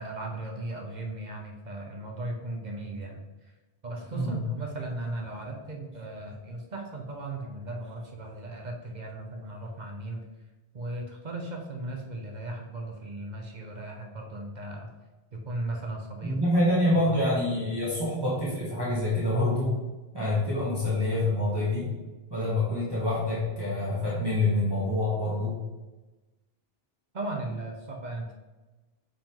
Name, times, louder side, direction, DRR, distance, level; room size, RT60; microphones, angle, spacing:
voice 1, 0.0-3.2 3.8-10.2 10.7-14.9 15.3-16.4 16.9-17.7 27.1-28.3, right 2 dB, 50° right, 1 dB, 0.9 m, -37 dB
voice 2, 16.2-19.7 20.1-21.9 22.3-25.5, left 1 dB, 25° right, -8 dB, 1.5 m, -26 dB
7.2 x 3.5 x 3.7 m, 1.2 s
omnidirectional pair, 1.0 m